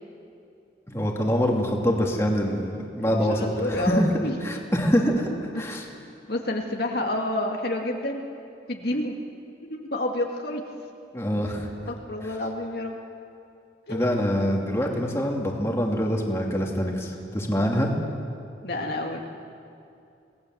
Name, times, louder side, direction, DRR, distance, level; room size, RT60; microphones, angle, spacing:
voice 1, 0.9-4.1 4.4-5.3 5.5-5.8 11.1-11.7 13.9-17.9, equal, 15° left, -1 dB, 2.7 m, -25 dB
voice 2, 3.0-4.3 5.5-5.6 6.3-8.3 8.7-9.2 9.6-10.6 11.9-12.9 13.9-14.1 18.6-19.2, left 1 dB, 60° left, 1 dB, 2.0 m, -29 dB
27.5 x 19.0 x 7.8 m, 2.5 s
head